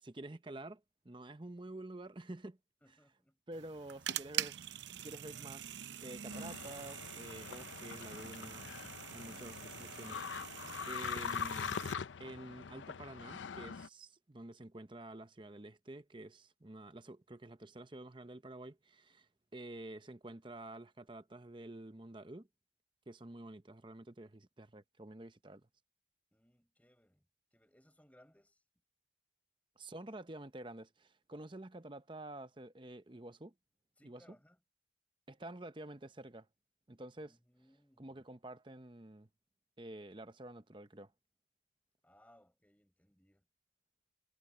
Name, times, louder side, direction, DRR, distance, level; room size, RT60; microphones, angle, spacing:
voice 1, 0.0-2.6 3.5-4.7 5.0-8.8 9.1-11.8 12.2-22.5 23.1-25.7 29.8-33.5 34.0-34.2 35.3-36.5 36.9-37.4 38.0-39.3 39.8-41.1, right 1 dB, 25° right, 0.8 m, -49 dB
voice 2, 2.8-3.4 26.3-27.2 27.5-28.6 34.0-34.6 37.2-38.2 42.0-43.4, equal, 10° left, 6.1 m, -67 dB
sound 1, 3.5-11.9, right 10 dB, 70° right, 0.7 m, -45 dB
sound 2, 6.3-13.9, left 6 dB, 80° left, 0.5 m, -43 dB
head